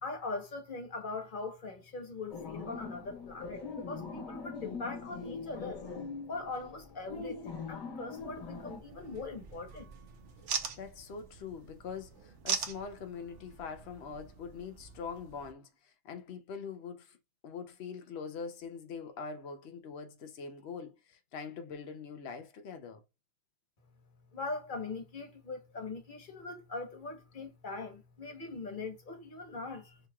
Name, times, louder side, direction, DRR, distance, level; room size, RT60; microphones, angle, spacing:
voice 1, 0.0-5.8 6.3-9.9 24.3-30.0, left 3 dB, 30° left, 1.1 m, -41 dB
sound 1, 2.3-8.8, left 4 dB, 70° left, 1.8 m, -42 dB
sound 2, 8.2-15.5, right 6 dB, 55° right, 0.9 m, -42 dB
voice 2, 10.8-17.2 17.4-23.0, left 5 dB, 85° left, 0.5 m, -43 dB
6.4 x 2.9 x 2.3 m
omnidirectional pair, 1.9 m